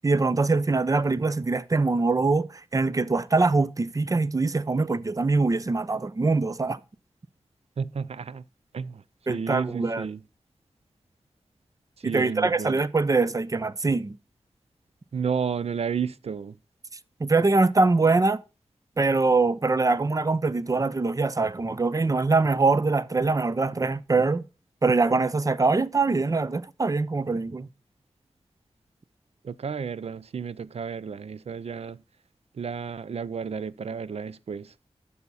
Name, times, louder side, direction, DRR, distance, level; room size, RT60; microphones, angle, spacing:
voice 1, 0.0-6.8 9.3-10.1 12.0-14.2 17.2-18.4 19.0-24.4 24.8-27.7, right 3 dB, 35° right, 0.6 m, -23 dB
voice 2, 7.8-8.4 8.7-9.0 9.3-10.2 12.0-12.8 15.1-16.5 29.4-32.0 32.6-34.7, right 6 dB, 75° right, 0.5 m, -32 dB
12.0 x 7.0 x 4.1 m
wide cardioid pair, 70°, 11 cm